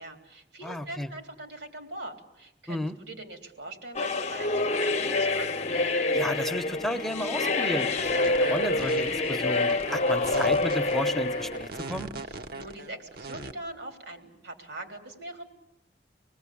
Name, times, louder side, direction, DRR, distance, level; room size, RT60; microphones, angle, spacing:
voice 1, 0.0-5.7 12.5-15.5, right 1 dB, 90° right, 3 dB, 3.6 m, -42 dB
voice 2, 0.6-1.1 2.7-3.0 6.1-12.1, left 1 dB, ahead, 7 dB, 0.8 m, -33 dB
sound 1, 4.0-11.7, left 2 dB, 40° left, 0.8 m, -27 dB
sound 2, 7.7-13.5, right 3 dB, 60° right, 0.9 m, -39 dB
26.0 x 19.5 x 8.6 m, 0.86 s
head